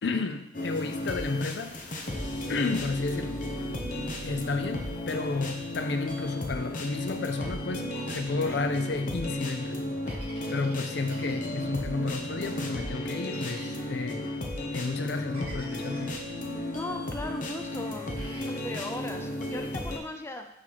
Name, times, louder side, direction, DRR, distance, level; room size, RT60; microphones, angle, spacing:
voice 1, 0.0-2.1 2.5-3.4 4.2-9.9 10.5-14.2 14.7-16.3, left 3 dB, 75° left, 7 dB, 0.5 m, -32 dB
sound 1, 0.5-20.0, left 1 dB, 50° left, 0.9 m, -34 dB
Human voice, 1.5-19.7, right 2 dB, 75° right, 0.7 m, -47 dB
sound 2, 7.9-8.7 10.1-11.8 13.3-13.8 15.3-16.2 18.2-18.6, right 2 dB, 35° right, 1.4 m, -48 dB
voice 2, 16.6-20.5, left 2 dB, 15° left, 5 dB, 0.5 m, -38 dB
6.1 x 3.2 x 5.8 m, 0.83 s
head